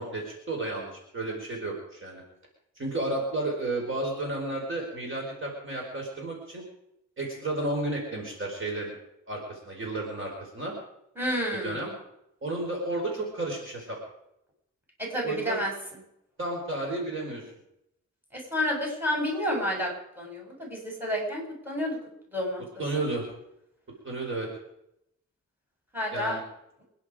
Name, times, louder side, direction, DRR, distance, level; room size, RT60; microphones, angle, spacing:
voice 1, 0.0-2.2 2.8-6.6 7.2-8.9 9.3-10.8 11.6-11.9 12.4-14.0 15.2-15.6 16.4-17.4 22.8-23.2 24.0-24.5 26.1-26.4, right 2 dB, 40° right, 0 dB, 4.6 m, -32 dB
voice 2, 11.2-11.8 15.0-15.7 18.3-19.9 20.2-22.0 22.3-22.6 25.9-26.4, equal, 5° right, -1 dB, 7.3 m, -30 dB
26.5 x 10.5 x 5.0 m, 0.80 s
wide cardioid pair, 115°, 30 cm